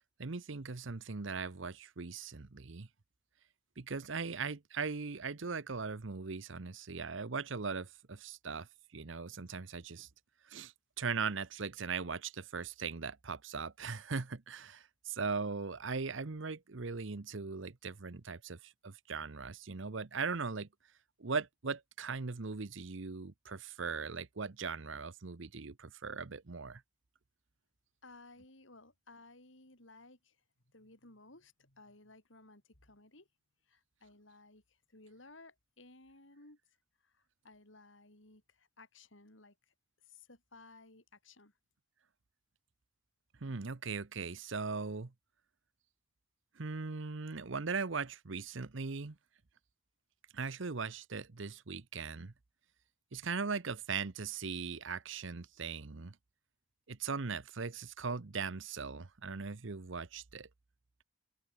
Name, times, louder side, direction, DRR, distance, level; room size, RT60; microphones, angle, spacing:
voice 1, 0.2-2.9 3.8-8.7 8.9-10.1 10.5-20.7 21.2-26.8 43.4-45.1 46.6-49.2 50.3-52.3 53.1-56.1 56.9-60.5, right 5 dB, 70° right, 0.9 m, -39 dB
voice 2, 28.0-30.4 30.7-33.3 33.7-36.6 37.0-39.7 40.1-41.5, left 2 dB, 70° left, 4.6 m, -58 dB
head